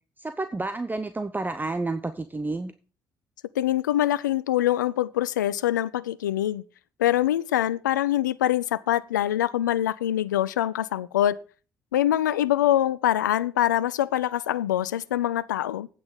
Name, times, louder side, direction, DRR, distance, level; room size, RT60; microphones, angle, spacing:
voice 1, 0.2-2.7, right 2 dB, 20° right, 0.9 m, -30 dB
voice 2, 3.6-6.6 7.0-11.4 11.9-15.9, left 12 dB, 90° left, 0.4 m, -24 dB
8.9 x 6.0 x 6.9 m
hypercardioid pair, 45°, 10 cm